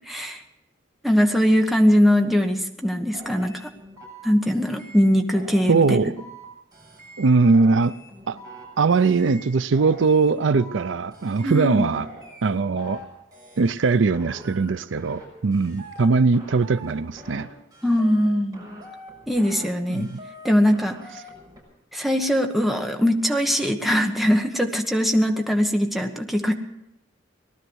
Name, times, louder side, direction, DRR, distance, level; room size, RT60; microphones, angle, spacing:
voice 1, 0.1-0.4 1.0-3.5 4.2-5.9 11.4-11.9 17.8-18.6 19.3-20.1 20.4-21.0 21.9-26.6, equal, ahead, 3 dB, 1.2 m, -21 dB
sound 1, 3.1-4.2 4.5-5.1 5.3-6.4 6.7-7.3 7.5-8.6 8.9-9.5 9.7-10.8 11.1-11.7 11.9-13.0 13.3-13.9 14.1-15.2 15.5-16.1 16.3-17.4 17.7-18.3 18.5-19.6 19.9-20.5 20.7-21.6, right 1 dB, 20° right, 6.8 m, -44 dB
voice 2, 5.7-6.2 7.2-7.9 8.3-8.4 8.8-12.1 12.4-13.0 13.6-17.5 19.9-20.2, right 4 dB, 70° right, 15 dB, 0.5 m, -20 dB
19.0 x 12.0 x 6.3 m, 0.91 s
head